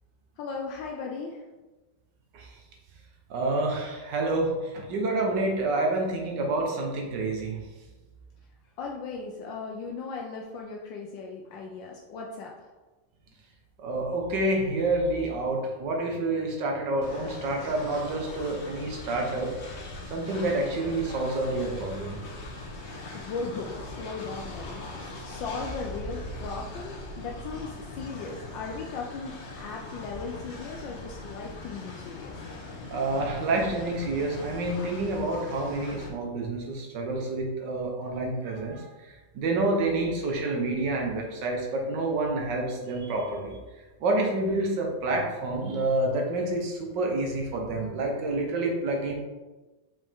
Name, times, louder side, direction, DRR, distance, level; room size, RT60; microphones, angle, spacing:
voice 1, 0.4-1.5 8.8-12.7 23.1-32.3, left 4 dB, 75° left, 0 dB, 1.3 m, -37 dB
voice 2, 3.3-7.6 13.8-19.5 20.1-22.2 32.9-38.9 39.3-43.6 44.0-49.1, right 2 dB, 70° right, 1 dB, 1.7 m, -28 dB
Train, 17.0-36.1, left 2 dB, 45° left, 1.0 m, -40 dB
5.5 x 5.2 x 3.6 m, 1.2 s
omnidirectional pair, 2.0 m